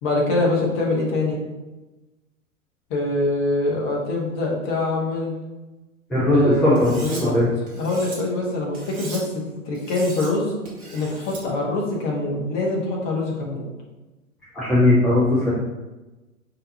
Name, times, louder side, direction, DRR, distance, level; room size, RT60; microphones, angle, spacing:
voice 1, 0.0-1.4 2.9-5.3 6.3-6.8 7.0-7.3 7.7-10.5 10.9-13.7, left 2 dB, 25° left, -2 dB, 1.0 m, -24 dB
voice 2, 6.1-7.5 14.5-15.5, left 1 dB, ahead, -10 dB, 0.6 m, -18 dB
Cutlery silverware, 6.8-7.2 7.7-8.2 8.7-9.2 9.7-10.3 10.7-11.4, right 3 dB, 20° right, 1.0 m, -39 dB
5.4 x 2.9 x 2.8 m, 1.1 s
figure-of-eight pair, 110°, 42 cm